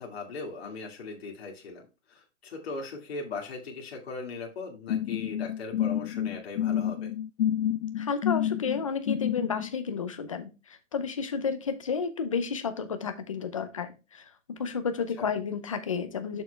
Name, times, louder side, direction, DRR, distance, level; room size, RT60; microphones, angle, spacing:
voice 1, 0.0-1.8 2.1-7.1 15.0-15.3, left 4 dB, 55° left, 0 dB, 2.1 m, -39 dB
sound 1, 4.9-9.7, left 10 dB, 75° left, 0.5 m, -29 dB
voice 2, 8.0-10.5 10.9-14.2 14.6-16.4, left 6 dB, 25° left, 9 dB, 0.6 m, -31 dB
6.7 x 6.4 x 3.2 m, 0.29 s
hypercardioid pair, 175°, 37 cm